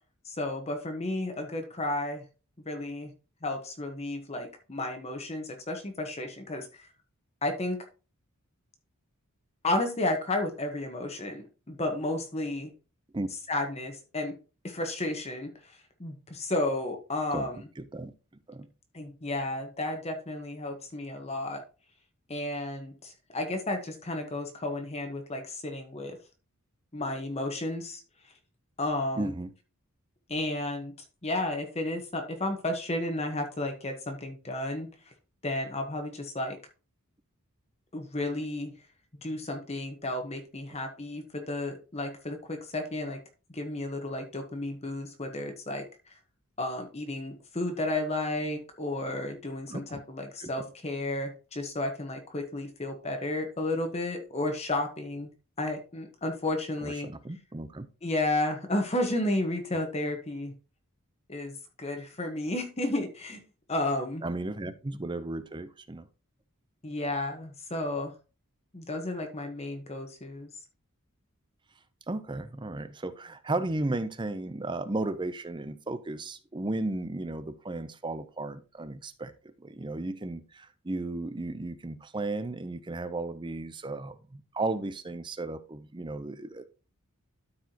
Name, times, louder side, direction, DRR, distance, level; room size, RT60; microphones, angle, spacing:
voice 1, 0.2-2.2 2.6-3.1 3.4-6.9 7.4-7.8 9.6-12.7 13.5-14.4 14.6-17.7 18.9-21.6 22.3-26.2 26.9-28.0 28.8-29.3 30.3-30.9 31.2-34.9 35.4-36.6 37.9-38.7 39.2-43.2 43.5-45.9 46.6-55.3 55.6-57.1 58.0-60.5 61.3-63.4 63.7-64.2 66.8-68.1 68.7-70.5, left 2 dB, 30° left, 4 dB, 1.1 m, -32 dB
voice 2, 17.3-18.1 18.5-18.7 29.2-29.5 49.7-50.0 50.4-50.5 56.8-57.9 64.2-66.1 72.1-79.3 79.6-86.6, right 2 dB, 20° right, 12 dB, 0.6 m, -34 dB
12.5 x 4.8 x 2.9 m, 0.33 s
head